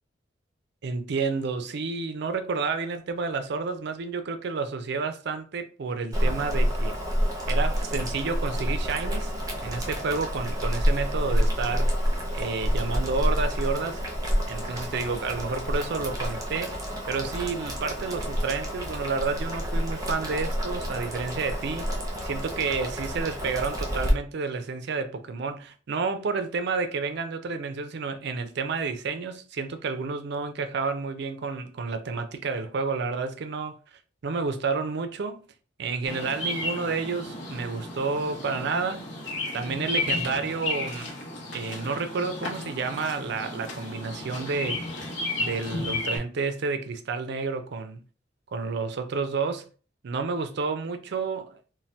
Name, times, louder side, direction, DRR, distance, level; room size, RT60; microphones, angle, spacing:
voice 1, 0.8-7.0 7.5-9.3 9.6-11.9 12.3-14.0 14.5-16.8 17.1-21.9 22.2-33.8 34.2-35.4 35.8-39.0 39.5-41.1 41.5-44.8 45.4-48.0 48.5-49.7 50.0-51.6, right 4 dB, 60° right, 0.4 m, -30 dB
Boiling, 6.1-24.1, equal, 20° right, 0.6 m, -28 dB
Bird vocalization bird call bird song, 36.1-46.2, left 2 dB, 65° left, 0.9 m, -33 dB
2.7 x 2.2 x 3.2 m
head